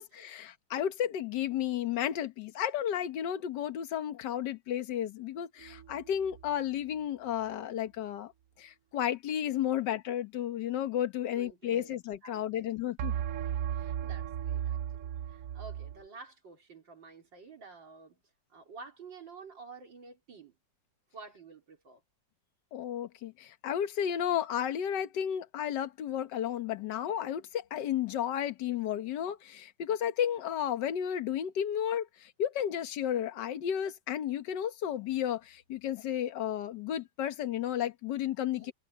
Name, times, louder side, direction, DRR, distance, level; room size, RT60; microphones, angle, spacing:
voice 1, 0.0-8.3 8.6-13.1 22.7-38.7, left 10 dB, 65° left, 1.7 m, -33 dB
sound 1, 5.6-6.5 13.0-16.0, right 10 dB, 85° right, 0.7 m, -35 dB
voice 2, 11.3-11.9 12.2-12.7 13.5-18.2 18.5-20.6 21.1-22.0 38.5-38.7, right 4 dB, 65° right, 4.6 m, -51 dB
omnidirectional pair, 2.2 m